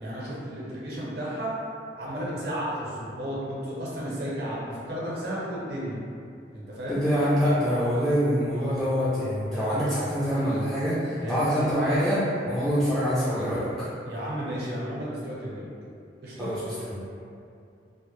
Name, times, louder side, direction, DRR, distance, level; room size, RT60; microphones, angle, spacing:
voice 1, 0.0-1.5 2.0-6.0 6.5-7.0 11.2-11.5 14.0-15.7 16.2-16.5, equal, 60° right, -7 dB, 0.6 m, -33 dB
voice 2, 6.9-13.9 16.4-17.1, equal, 5° left, -12 dB, 0.3 m, -25 dB
2.1 x 2.0 x 3.0 m, 2.5 s
head